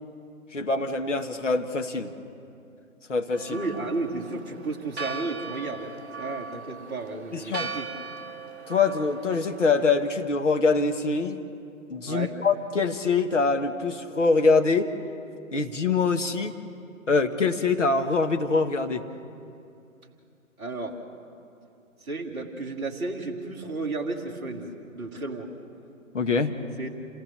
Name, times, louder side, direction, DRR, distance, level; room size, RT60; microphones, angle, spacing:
voice 1, 0.5-2.1 3.1-3.6 7.3-7.7 8.7-11.4 11.9-14.9 15.5-16.5 17.1-19.0 26.1-26.5, left 4 dB, 60° left, 6 dB, 1.5 m, -24 dB
Church bell, 3.3-10.0, right 4 dB, 50° right, 1.0 m, -39 dB
voice 2, 3.5-7.9 12.1-12.3 20.6-21.0 22.0-25.5 26.8-26.9, right 3 dB, 10° right, -7 dB, 1.6 m, -33 dB
28.0 x 17.5 x 6.7 m, 2.6 s
figure-of-eight pair, 145°, 42 cm